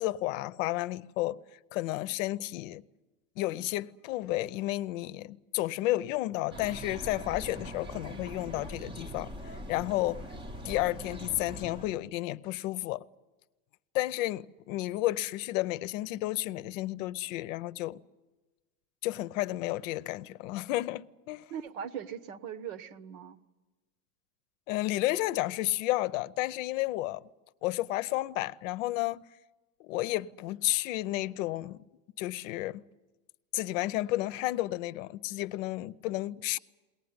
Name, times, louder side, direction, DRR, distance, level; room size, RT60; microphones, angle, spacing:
voice 1, 0.0-1.4 1.7-2.8 3.4-10.3 10.6-13.0 13.9-18.0 19.0-21.4 24.7-27.2 27.6-29.2 29.8-31.8 32.2-32.8 33.5-36.6, left 17 dB, 65° left, 0.7 m, -32 dB
sound 1, 6.5-12.0, equal, 10° right, 0.7 m, -42 dB
voice 2, 21.5-23.4, right 8 dB, 70° right, 1.2 m, -40 dB
21.5 x 18.5 x 9.5 m
supercardioid pair, 160°, 43 cm